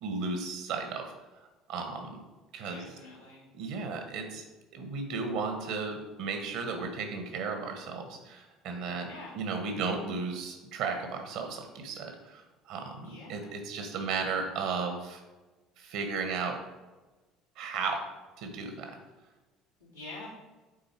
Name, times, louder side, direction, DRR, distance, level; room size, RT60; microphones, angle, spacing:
voice 1, 0.0-1.1 1.7-2.2 2.5-2.8 3.5-4.4 4.7-15.2 15.8-16.6 17.6-18.0 18.4-19.0, right 4 dB, 55° right, 4 dB, 1.3 m, -35 dB
voice 2, 2.6-3.4 9.1-9.4 12.9-13.6 19.9-20.3, left 2 dB, 85° left, -8 dB, 2.4 m, -46 dB
8.6 x 4.2 x 4.7 m, 1.2 s
figure-of-eight pair, 60°, 0 cm